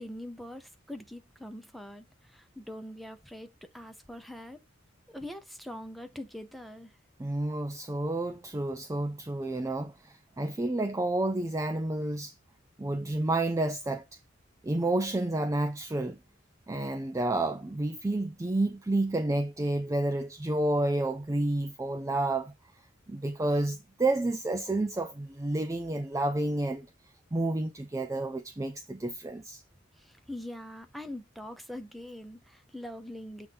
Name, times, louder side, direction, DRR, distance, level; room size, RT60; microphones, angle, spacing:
voice 1, 0.0-4.6 5.1-6.9 30.0-33.5, left 1 dB, ahead, 0.8 m, -43 dB
voice 2, 7.2-12.3 12.8-14.0 14.6-16.2 16.7-22.5 23.1-26.9 27.3-29.6, right 2 dB, 15° right, 0.4 m, -30 dB
7.9 x 2.7 x 5.3 m
head